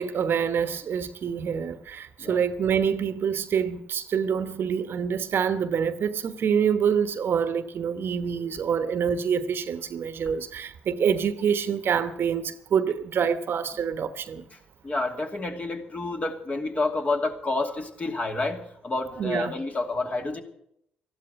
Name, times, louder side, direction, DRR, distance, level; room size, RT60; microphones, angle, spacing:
voice 1, 0.0-14.4 19.2-19.5, right 7 dB, 55° right, 1.1 m, -26 dB
voice 2, 14.8-20.4, left 2 dB, 30° left, 2.6 m, -29 dB
14.0 x 12.0 x 8.0 m
supercardioid pair, 60°, 4 cm